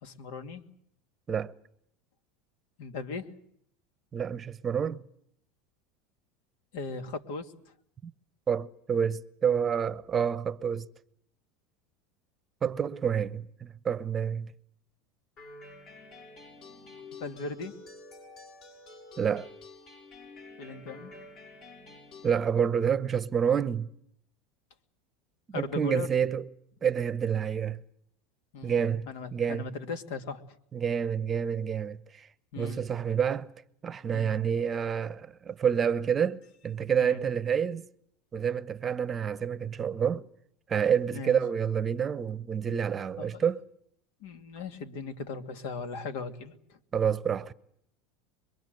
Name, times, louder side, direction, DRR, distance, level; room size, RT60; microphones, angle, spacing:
voice 1, 0.0-0.6 2.8-3.3 6.7-7.5 17.2-17.7 20.6-21.1 25.5-26.1 28.5-28.8 29.1-30.4 32.5-32.8 34.1-34.3 37.0-37.2 41.1-41.4 43.2-43.5 44.2-46.8, left 4 dB, 70° left, 2.3 m, -38 dB
voice 2, 4.1-5.0 8.0-8.1 8.5-10.9 12.6-14.5 19.2-19.5 22.2-23.9 25.5-26.5 26.8-27.8 28.6-29.6 30.7-32.3 32.5-33.5 33.8-37.9 38.3-40.3 40.7-43.6 46.9-47.5, right 7 dB, 25° right, 0.9 m, -28 dB
sound 1, 15.4-22.4, left 2 dB, 45° left, 7.8 m, -49 dB
25.0 x 22.0 x 7.9 m
supercardioid pair, 115°, 0 cm